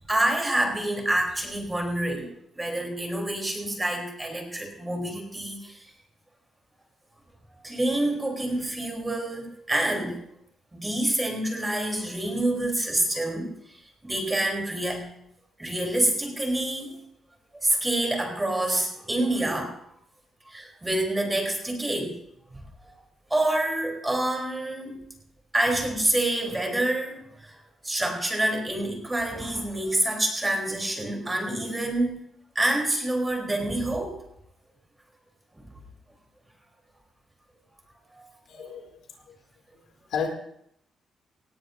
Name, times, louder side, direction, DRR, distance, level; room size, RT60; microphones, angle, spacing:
voice 1, 0.1-5.9 7.6-10.2 10.7-15.1 15.6-17.0 17.6-19.8 20.5-22.2 22.5-22.9 23.3-25.0 25.5-32.2 32.6-34.2 35.5-35.7 38.1-38.3, right 1 dB, 15° right, 2 dB, 3.5 m, -27 dB
voice 2, 38.5-39.0 39.3-39.4 40.1-40.3, left 6 dB, 85° left, 2 dB, 2.5 m, -31 dB
18.0 x 17.0 x 2.6 m, 0.71 s
cardioid pair, 115°, 0 cm